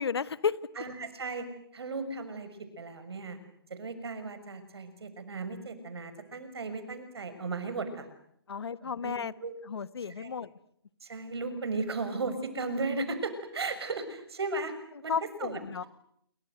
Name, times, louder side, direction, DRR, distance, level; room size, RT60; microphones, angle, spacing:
voice 1, 0.0-0.6 8.5-9.3 9.7-10.5 15.1-15.8, left 6 dB, 80° left, 16 dB, 1.5 m, -32 dB
voice 2, 0.8-1.5 1.7-3.4 3.7-8.1 8.8-9.5 10.1-10.4 11.0-14.7 15.0-15.1 15.4-15.9, right 3 dB, 80° right, 11 dB, 6.5 m, -36 dB
27.5 x 24.0 x 8.0 m, 0.70 s
hypercardioid pair, 160°, 13 cm